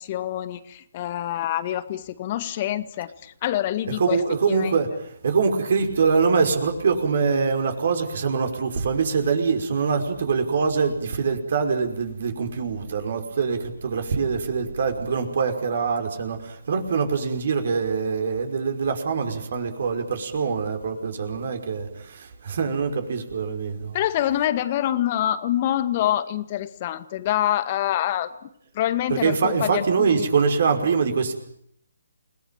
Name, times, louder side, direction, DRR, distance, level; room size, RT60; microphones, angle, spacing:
voice 1, 0.0-4.2 4.5-4.7 23.9-28.3 28.7-30.1, left 12 dB, 35° left, 12 dB, 2.0 m, -26 dB
voice 2, 3.9-24.0 29.1-31.3, right 5 dB, 50° right, 6 dB, 5.4 m, -24 dB
29.5 x 19.5 x 9.1 m, 0.71 s
figure-of-eight pair, 140°, 0 cm